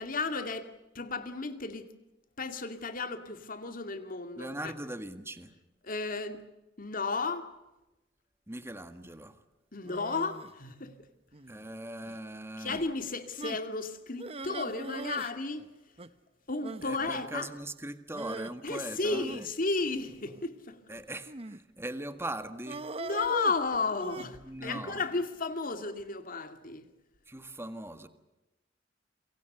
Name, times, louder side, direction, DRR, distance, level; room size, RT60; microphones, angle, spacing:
voice 1, 0.0-1.9 2.4-4.7 5.8-6.4 6.8-7.5 9.7-11.0 12.6-15.7 16.5-17.5 18.6-20.8 23.0-26.9, left 3 dB, 50° left, 2.4 m, -33 dB
voice 2, 4.4-5.5 8.5-9.4 11.5-12.8 16.8-19.5 20.9-22.9 24.4-25.0 27.3-28.1, right 1 dB, 15° right, 1.7 m, -40 dB
sound 1, 9.8-10.5 11.3-11.7 12.0-12.2 12.7-12.8 13.4-13.7 14.2-15.3 15.6-15.7 16.0-16.1 16.6-16.9 18.1-18.5 19.1-20.5 21.3-21.7 22.7-24.3, right 2 dB, 35° right, 1.0 m, -41 dB
28.0 x 24.0 x 6.8 m
head